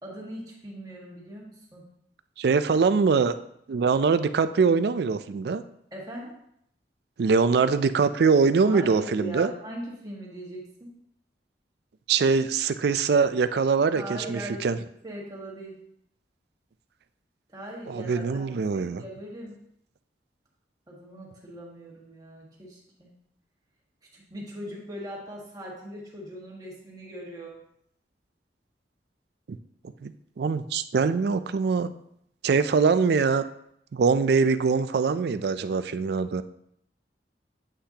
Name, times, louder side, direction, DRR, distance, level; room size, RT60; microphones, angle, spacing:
voice 1, 0.0-1.8 5.9-6.3 8.6-10.9 13.9-14.7 15.0-15.8 17.5-19.6 20.9-23.1 24.1-27.6, right 1 dB, 20° right, -3 dB, 1.7 m, -40 dB
voice 2, 2.4-3.3 3.7-5.6 7.2-9.5 12.1-14.8 17.9-19.0 30.0-30.1 30.4-31.9 32.4-33.4 33.9-36.4, right 5 dB, 60° right, 12 dB, 0.4 m, -23 dB
8.2 x 5.7 x 2.8 m, 0.73 s
head